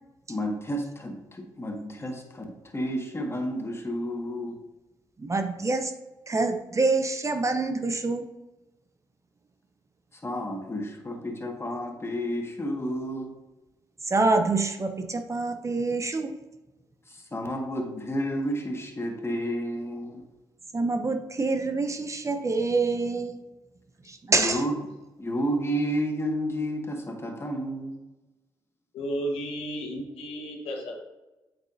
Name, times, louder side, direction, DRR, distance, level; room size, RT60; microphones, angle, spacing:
voice 1, 0.3-4.5 10.2-13.3 17.1-20.2 24.3-24.7 25.2-27.9, equal, 25° left, 2 dB, 1.7 m, -31 dB
voice 2, 5.2-5.9 6.3-8.3 14.0-16.4 20.7-23.4 24.0-24.6, right 3 dB, 30° right, 7 dB, 0.8 m, -26 dB
voice 3, 28.9-31.0, equal, 70° left, 1 dB, 1.4 m, -33 dB
7.9 x 6.1 x 2.7 m, 1.1 s
hypercardioid pair, 40°, 10 cm